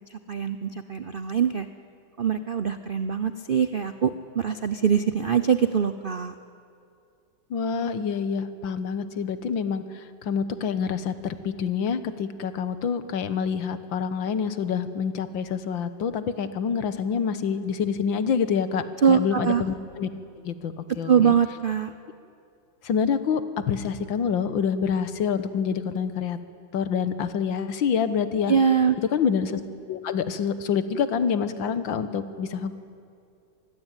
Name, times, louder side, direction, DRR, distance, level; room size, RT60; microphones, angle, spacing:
voice 1, 0.1-1.7 2.2-6.3 19.0-19.6 21.0-21.9 28.5-29.0, right 7 dB, 65° right, 11 dB, 0.5 m, -23 dB
voice 2, 7.5-20.1 20.4-21.3 22.8-26.4 26.7-28.5 29.1-29.6 29.9-32.7, left 6 dB, 80° left, 12 dB, 1.9 m, -27 dB
25.5 x 20.5 x 9.1 m, 2.5 s
omnidirectional pair, 2.1 m